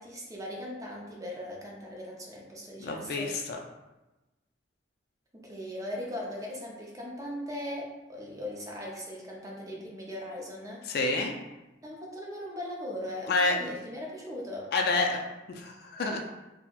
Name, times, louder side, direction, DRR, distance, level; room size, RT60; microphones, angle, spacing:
voice 1, 0.0-3.4 5.3-10.8 11.8-14.7, left 1 dB, 20° right, -2 dB, 0.5 m, -39 dB
voice 2, 2.8-3.6 10.9-11.3 13.3-13.5 14.7-15.2 15.5-16.2, left 3 dB, 55° left, 2 dB, 0.3 m, -28 dB
4.0 x 2.1 x 2.2 m, 1.0 s
head